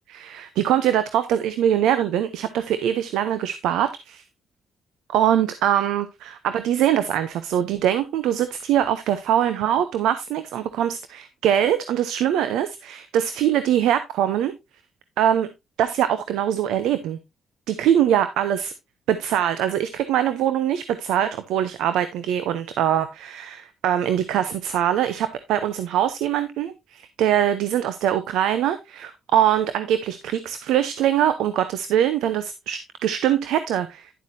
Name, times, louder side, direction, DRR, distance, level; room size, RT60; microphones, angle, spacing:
voice 1, 0.1-4.2 5.1-14.6 15.2-15.5 15.8-17.2 17.7-18.7 19.1-34.1, right 10 dB, 90° right, 0.7 m, -23 dB
10.5 x 7.5 x 2.7 m
cardioid pair, 90°, 0 cm